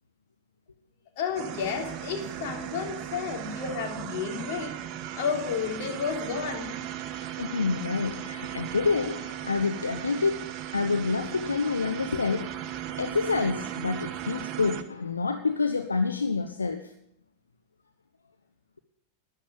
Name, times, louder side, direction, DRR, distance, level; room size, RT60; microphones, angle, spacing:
voice 1, 1.2-4.7 5.2-6.7, left 6 dB, 45° left, 3 dB, 3.4 m, -31 dB
sound 1, 1.4-14.8, right 11 dB, 40° right, 1.2 m, -37 dB
voice 2, 7.3-16.9, left 4 dB, 75° left, 8 dB, 0.9 m, -28 dB
13.5 x 10.5 x 8.8 m, 0.76 s
figure-of-eight pair, 90°, 0 cm